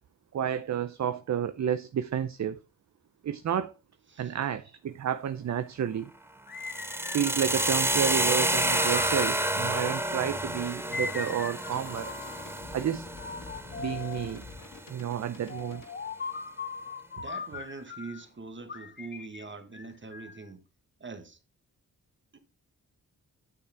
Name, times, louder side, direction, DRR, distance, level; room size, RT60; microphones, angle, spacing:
voice 1, 0.3-2.6 3.2-3.7 4.2-6.1 7.1-12.1 12.7-13.1 13.8-14.5 14.9-15.8, right 9 dB, 50° right, 0.6 m, -30 dB
sound 1, 6.5-8.1 8.7-10.3 10.9-12.5 13.2-14.4 15.5-18.3 18.7-20.5, left 5 dB, 30° left, 0.7 m, -40 dB
sound 2, 6.6-14.6, right 1 dB, 5° right, 0.7 m, -29 dB
sound 3, 10.4-15.9, left 4 dB, 65° left, 2.6 m, -48 dB
voice 2, 17.2-20.6 21.0-21.4 22.3-22.4, right 4 dB, 35° right, 1.5 m, -43 dB
9.0 x 6.6 x 3.5 m
cardioid pair, 75°, 35 cm